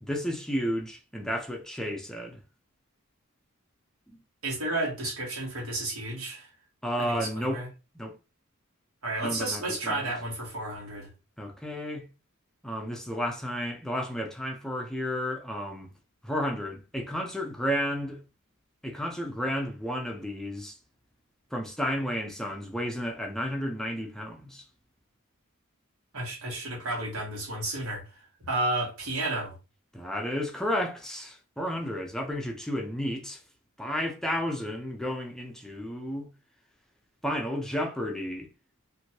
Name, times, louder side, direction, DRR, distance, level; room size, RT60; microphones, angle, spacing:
voice 1, 0.0-2.4 4.1-4.2 6.8-7.7 8.0-8.1 9.2-10.1 11.4-12.0 12.6-15.9 16.2-18.2 18.8-20.8 21.5-24.6 29.9-33.4 33.8-36.3 37.2-38.5, equal, ahead, 0.4 m, -32 dB
voice 2, 4.4-6.5 7.0-7.7 9.0-11.1 26.1-28.0 28.5-29.5, right 2 dB, 85° right, 1.4 m, -32 dB
3.0 x 2.5 x 2.8 m
head